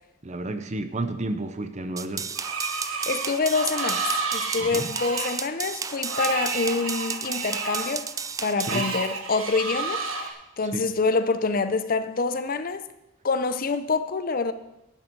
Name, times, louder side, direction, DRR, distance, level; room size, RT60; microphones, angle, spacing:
voice 1, 0.2-2.4 4.6-4.9 8.6-8.9 10.6-10.9, right 2 dB, 35° right, 0.7 m, -32 dB
sound 1, 2.0-8.8, right 6 dB, 15° right, 0.3 m, -33 dB
Screech, 2.3-10.3, right 3 dB, 70° right, 1.4 m, -31 dB
voice 2, 3.1-8.1 8.4-10.0 10.6-12.8 13.2-14.5, left 4 dB, 45° left, 0.6 m, -26 dB
11.0 x 9.0 x 4.6 m
head